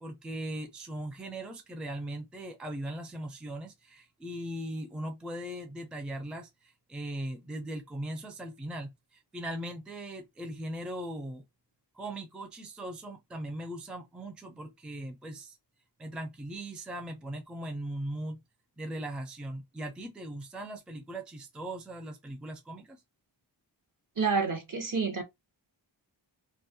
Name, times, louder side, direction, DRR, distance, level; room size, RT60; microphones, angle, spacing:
voice 1, 0.0-11.5 11.9-15.6 16.0-18.4 18.8-23.0, right 1 dB, ahead, 0.4 m, -39 dB
voice 2, 24.2-25.2, right 5 dB, 45° right, 0.7 m, -28 dB
2.3 x 2.1 x 2.7 m
wide cardioid pair, 70°, 46 cm